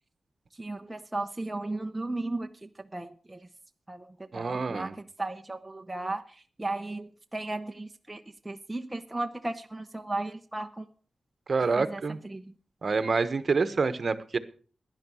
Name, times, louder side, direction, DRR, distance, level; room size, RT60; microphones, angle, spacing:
voice 1, 0.6-3.5 3.9-10.9 11.8-12.5, right 2 dB, 10° right, 4 dB, 0.7 m, -36 dB
voice 2, 4.3-4.9 11.5-12.2 12.8-14.4, right 4 dB, 40° right, 13 dB, 1.1 m, -27 dB
16.5 x 11.0 x 6.3 m, 0.43 s
wide cardioid pair, 165°, 0 cm